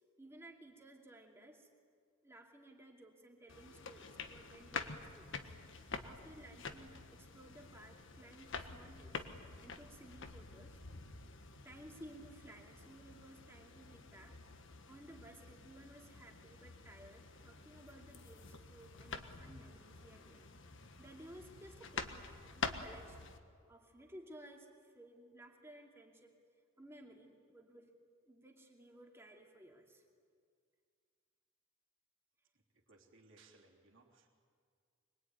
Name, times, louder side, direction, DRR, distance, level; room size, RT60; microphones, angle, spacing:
voice 1, 0.2-1.7 2.2-5.5 6.0-9.2 9.6-10.8 11.6-14.4 14.9-23.3 23.7-26.4 26.8-27.9 28.3-30.0, right 1 dB, 10° right, 1 dB, 2.7 m, -57 dB
sound 1, 3.5-23.4, left 4 dB, 55° left, 1.5 m, -48 dB
voice 2, 32.7-34.3, right 3 dB, 60° right, -1 dB, 3.3 m, -64 dB
25.0 x 22.5 x 9.6 m, 2.1 s
head